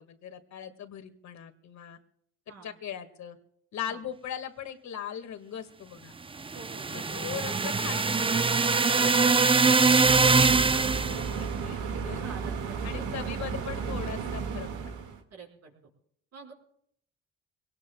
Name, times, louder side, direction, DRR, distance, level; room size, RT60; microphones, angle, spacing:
voice 1, 0.0-2.0 2.6-3.4 3.7-6.1 6.9-8.4 8.8-10.6 11.1-12.3 12.8-15.0, left 9 dB, 65° left, 8 dB, 1.9 m, -40 dB
sound 1, 6.4-11.3, right 4 dB, 20° right, 0.6 m, -23 dB
voice 2, 6.5-7.1 8.9-9.2 12.0-13.5 15.3-15.9 16.3-16.5, right 5 dB, 60° right, -1 dB, 5.5 m, -47 dB
sound 2, 10.0-15.2, right 6 dB, 80° right, 2.0 m, -33 dB
24.5 x 18.5 x 2.3 m, 0.68 s
cardioid pair, 90°, 30 cm